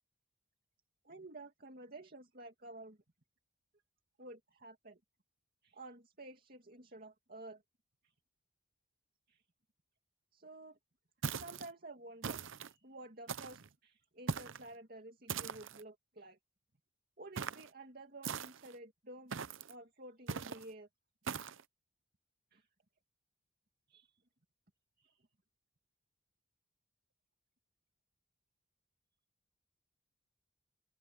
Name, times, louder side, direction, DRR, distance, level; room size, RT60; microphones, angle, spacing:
voice 1, 1.0-3.0 4.2-5.0 5.6-7.6 8.0-8.1 9.3-9.4 10.3-10.8 11.3-16.4 17.2-19.4 19.7-20.9 22.5-22.7 23.9-24.2 25.0-25.3, right 2 dB, 45° right, 2.4 m, -52 dB
sound 1, 11.2-11.7 12.2-12.7 13.3-13.7 14.3-14.7 15.3-15.8 17.4-17.7 18.2-18.7 19.3-19.7 20.3-20.6 21.3-21.6, right 5 dB, 65° right, 0.7 m, -40 dB
open air
head